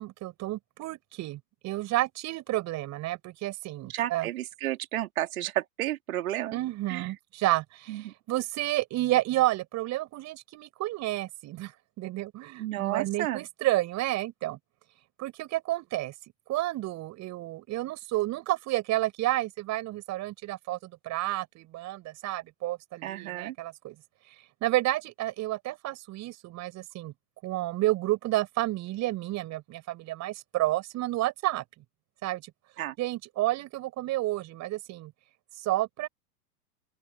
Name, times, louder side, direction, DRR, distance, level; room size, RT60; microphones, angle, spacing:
voice 1, 0.0-4.3 6.5-11.7 12.0-14.6 15.2-16.1 16.5-24.0 24.3-24.4 24.6-27.1 27.4-31.6 32.2-32.5 33.0-35.1 35.6-36.1, right 16 dB, 35° right, 7.5 m, -30 dB
voice 2, 3.9-6.6 6.9-7.0 7.9-8.1 12.6-13.4 23.0-23.5 32.8-32.9, right 13 dB, 60° right, 3.4 m, -32 dB
open air
hypercardioid pair, 105°, 47 cm